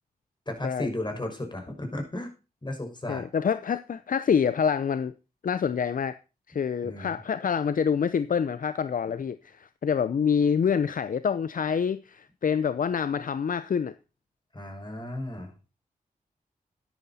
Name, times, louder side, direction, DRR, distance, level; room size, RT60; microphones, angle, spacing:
voice 1, 0.5-2.3 2.6-3.3 6.8-7.2 14.5-15.5, left 1 dB, 30° left, 5.6 m, -34 dB
voice 2, 3.1-5.1 5.4-6.1 6.5-13.9, left 7 dB, 60° left, 0.6 m, -26 dB
12.5 x 11.0 x 4.2 m
cardioid pair, 40°, 16 cm